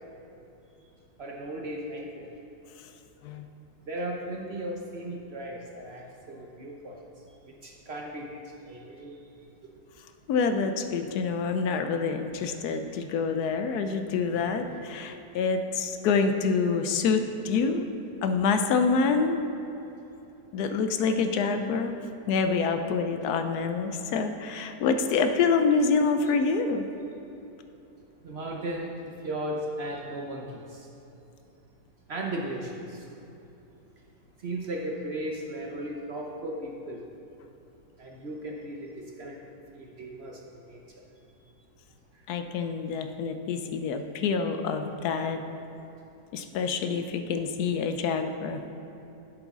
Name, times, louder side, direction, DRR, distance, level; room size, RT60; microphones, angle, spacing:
voice 1, 1.2-2.3 3.9-7.0 7.5-9.1 28.2-30.9 32.1-33.1 34.4-37.0 38.0-39.4 39.7-41.0, right 1 dB, 50° right, 0 dB, 0.8 m, -36 dB
voice 2, 10.3-17.9 18.2-19.4 20.5-21.9 22.3-26.9 42.3-45.4 46.3-48.6, left 5 dB, 75° left, 7 dB, 1.1 m, -26 dB
11.0 x 8.0 x 3.6 m, 2.9 s
omnidirectional pair, 1.7 m